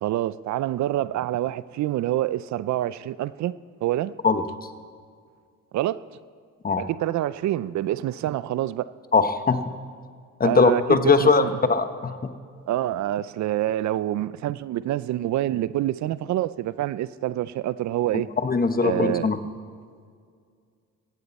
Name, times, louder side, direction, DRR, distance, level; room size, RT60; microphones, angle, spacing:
voice 1, 0.0-3.5 3.8-4.1 5.7-6.0 6.8-8.9 10.4-11.6 12.7-18.3 18.8-19.3, right 13 dB, 70° right, 0.5 m, -26 dB
voice 2, 9.1-9.6 10.4-12.3 18.4-19.4, left 4 dB, 30° left, 1.1 m, -20 dB
17.5 x 15.0 x 4.2 m
cardioid pair, 90°, 30 cm